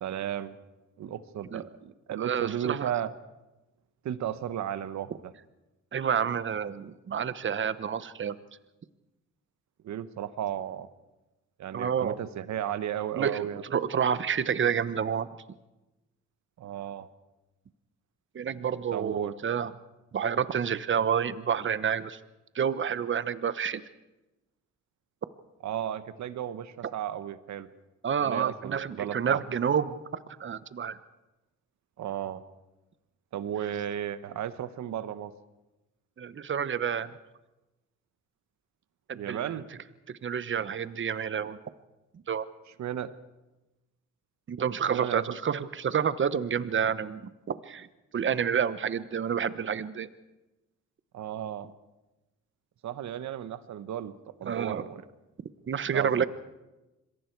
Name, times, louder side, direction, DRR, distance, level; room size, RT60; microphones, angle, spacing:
voice 1, 0.0-0.6 1.0-3.1 4.0-5.3 9.8-10.9 11.6-13.6 16.6-17.1 18.9-19.3 25.6-27.7 28.2-29.4 32.0-32.4 33.3-35.3 39.1-39.6 42.8-43.1 44.9-45.4 51.1-51.7 52.8-54.1 54.4-55.0 55.9-56.3, right 10 dB, 70° right, 13 dB, 1.2 m, -34 dB
voice 2, 2.2-2.9 5.9-8.3 11.7-12.2 13.2-15.3 18.3-19.7 20.1-22.2 22.5-23.8 28.0-30.0 30.4-31.0 36.2-37.1 39.1-39.5 40.2-41.6 42.3-42.4 44.5-47.9 48.1-50.1 54.5-54.8 55.7-56.3, right 7 dB, 40° right, 14 dB, 1.1 m, -29 dB
26.5 x 22.0 x 4.7 m, 1.0 s
cardioid pair, 90°, 30 cm